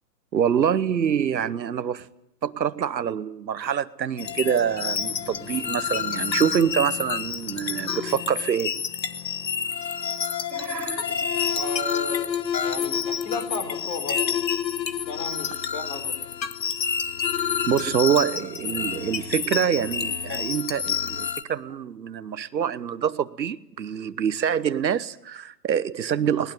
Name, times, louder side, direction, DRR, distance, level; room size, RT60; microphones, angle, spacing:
voice 1, 0.3-2.1 2.4-8.8 10.5-11.2 11.6-11.8 17.7-26.5, right 8 dB, 90° right, 1.1 m, -26 dB
sound 1, 4.2-21.4, left 7 dB, 90° left, 1.4 m, -28 dB
voice 2, 11.5-12.3 12.6-14.4 15.1-16.1, left 3 dB, 35° left, 4.6 m, -34 dB
20.5 x 19.5 x 9.1 m
hypercardioid pair, 125°, 50 cm